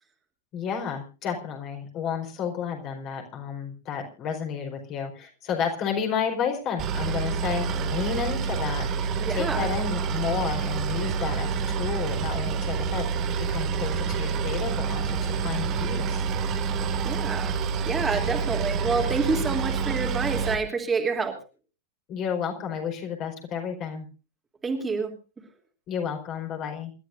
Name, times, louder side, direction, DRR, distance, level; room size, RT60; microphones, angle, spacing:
voice 1, 0.5-13.1 13.5-16.2 22.1-24.1 25.9-26.9, left 7 dB, 35° left, 2 dB, 4.6 m, -31 dB
Boat Water vehicle, 6.8-20.5, right 6 dB, 35° right, 2.2 m, -28 dB
voice 2, 9.2-9.7 17.0-17.6 17.8-21.4 24.6-25.1, right 4 dB, 15° right, 2 dB, 3.1 m, -28 dB
28.0 x 13.0 x 2.6 m, 0.33 s
figure-of-eight pair, 90°, 0 cm